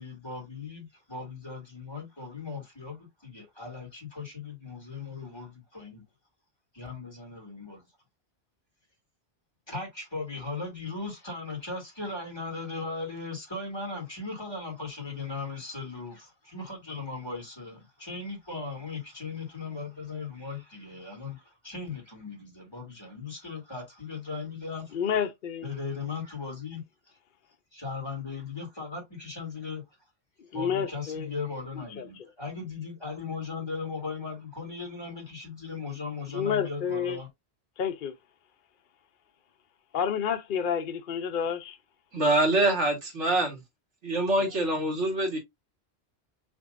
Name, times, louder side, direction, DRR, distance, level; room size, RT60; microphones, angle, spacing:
voice 1, 0.0-6.0 6.7-7.8 9.7-25.0 25.6-26.8 27.7-29.8 30.5-37.3, left 4 dB, 20° left, 2.4 m, -38 dB
voice 2, 24.9-25.7 30.5-31.3 32.0-32.1 36.3-37.2 37.8-38.1 39.9-41.8, left 7 dB, 55° left, 0.7 m, -29 dB
voice 3, 42.1-43.6 44.0-45.4, right 1 dB, 85° right, 2.1 m, -25 dB
6.0 x 2.9 x 2.5 m
omnidirectional pair, 1.2 m